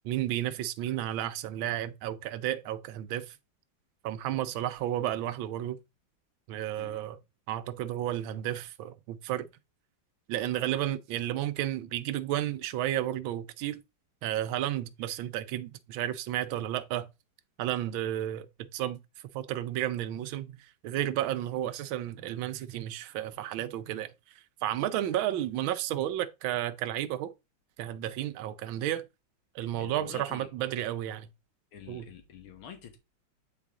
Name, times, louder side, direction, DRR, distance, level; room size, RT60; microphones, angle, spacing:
voice 1, 0.0-3.4 4.0-5.8 6.5-7.2 7.5-9.5 10.3-13.8 14.2-17.1 17.6-18.5 18.7-19.0 19.3-24.1 24.6-27.3 27.8-29.0 29.5-31.3 31.9-32.1, right 12 dB, 80° right, 1.4 m, -32 dB
voice 2, 29.6-30.5 31.7-33.0, left 8 dB, 85° left, 2.2 m, -47 dB
9.1 x 4.2 x 3.6 m
omnidirectional pair, 2.2 m